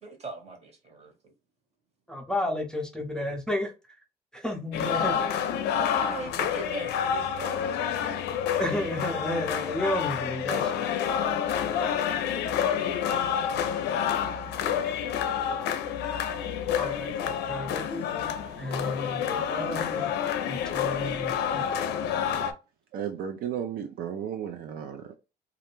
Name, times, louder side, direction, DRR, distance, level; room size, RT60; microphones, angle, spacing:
voice 1, 0.0-1.3 5.9-8.2, right 3 dB, 40° right, 1.1 m, -40 dB
voice 2, 2.1-3.7 4.3-5.3 8.6-10.7 16.7-18.3 18.6-20.1 20.5-21.6, left 1 dB, 5° left, 0.5 m, -32 dB
sound 1, 4.7-22.5, left 8 dB, 80° left, 0.4 m, -28 dB
voice 3, 22.9-25.1, right 9 dB, 65° right, 0.4 m, -34 dB
2.4 x 2.1 x 3.0 m
cardioid pair, 110°, 17 cm